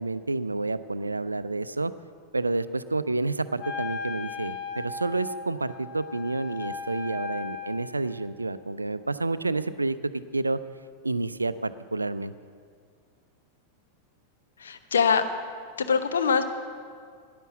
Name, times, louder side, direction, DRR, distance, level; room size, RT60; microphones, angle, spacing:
voice 1, 0.0-1.9 2.3-10.0 10.3-10.6 11.0-12.3, right 3 dB, 80° right, 14 dB, 0.4 m, -29 dB
Wind instrument woodwind instrument, 3.6-8.1, left 6 dB, 35° left, 1.8 m, -37 dB
voice 2, 14.6-15.2 15.8-16.5, left 6 dB, 65° left, 9 dB, 0.8 m, -23 dB
11.0 x 10.0 x 7.2 m, 2.1 s
figure-of-eight pair, 90°, 0 cm